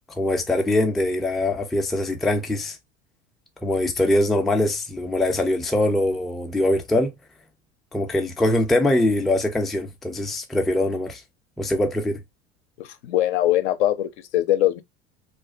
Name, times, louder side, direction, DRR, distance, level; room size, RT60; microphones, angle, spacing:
voice 1, 0.2-2.8 3.6-7.1 7.9-11.2 11.6-12.2, left 1 dB, ahead, 0.3 m, -22 dB
voice 2, 12.8-14.8, left 13 dB, 70° left, 0.5 m, -22 dB
2.4 x 2.3 x 2.4 m
hypercardioid pair, 75°, 35 cm